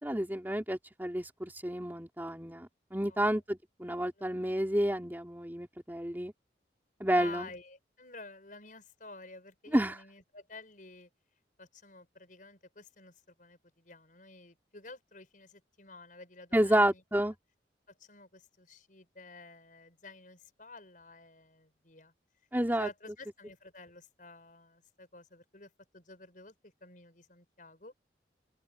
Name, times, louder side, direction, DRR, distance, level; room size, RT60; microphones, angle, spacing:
voice 1, 0.0-6.3 7.0-7.5 9.7-9.9 16.5-17.3 22.5-22.9, right 1 dB, 10° right, 2.5 m, -30 dB
voice 2, 3.1-3.4 3.9-4.3 7.1-11.1 11.6-17.3 18.0-22.1 22.8-27.9, left 3 dB, 50° left, 6.5 m, -51 dB
open air
head